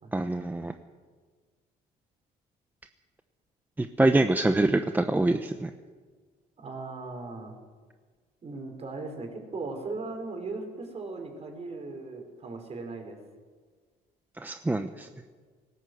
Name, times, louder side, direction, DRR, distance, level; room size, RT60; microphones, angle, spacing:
voice 1, 0.1-0.7 3.8-5.7 14.4-15.1, right 2 dB, 10° right, 8 dB, 0.9 m, -25 dB
voice 2, 6.6-7.6 8.4-13.2, right 3 dB, 40° right, 3 dB, 5.2 m, -38 dB
19.5 x 17.5 x 8.2 m, 1.5 s
cardioid pair, 110°, 17 cm